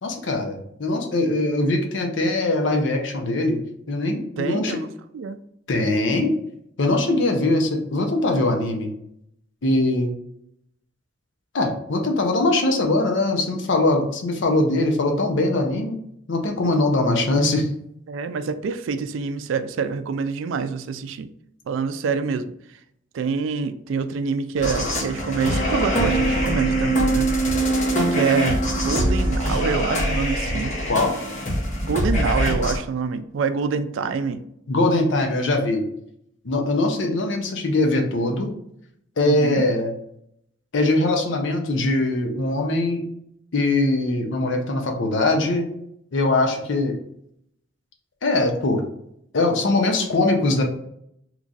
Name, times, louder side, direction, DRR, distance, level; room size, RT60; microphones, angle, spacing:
voice 1, 0.0-3.6 3.9-4.8 5.7-6.3 6.8-8.9 9.6-10.1 11.5-16.0 16.3-17.7 30.9-31.1 34.7-35.8 36.4-38.5 39.2-39.9 40.7-43.0 43.5-45.7 46.1-46.9 48.2-48.8 49.3-50.6, left 2 dB, 65° left, 3 dB, 0.7 m, -21 dB
voice 2, 4.4-4.9 5.1-5.4 16.6-16.8 18.1-21.3 21.7-22.5 23.1-27.3 28.1-30.8 31.8-34.4 39.2-39.6, right 5 dB, 70° right, 11 dB, 0.3 m, -26 dB
sound 1, 24.6-32.8, right 1 dB, 40° left, 0.9 m, -23 dB
3.0 x 2.4 x 3.8 m, 0.74 s
head